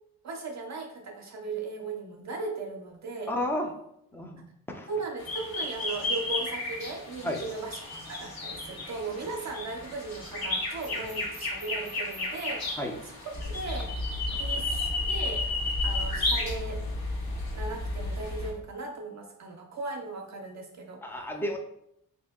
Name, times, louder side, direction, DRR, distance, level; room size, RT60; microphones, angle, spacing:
voice 1, 0.2-3.3 4.9-7.8 8.1-12.7 13.0-13.9 14.3-15.4 15.8-16.8 17.5-21.0, right 3 dB, 50° right, 2 dB, 0.5 m, -37 dB
voice 2, 3.3-3.7 4.1-4.4 4.7-4.9 7.2-7.4 12.8-13.0 14.3-14.6 21.0-21.6, left 1 dB, 5° left, 3 dB, 0.4 m, -32 dB
sound 1, 5.2-18.5, left 2 dB, 80° left, 1.2 m, -32 dB
3.5 x 2.6 x 3.5 m, 0.76 s
wide cardioid pair, 140°, 36 cm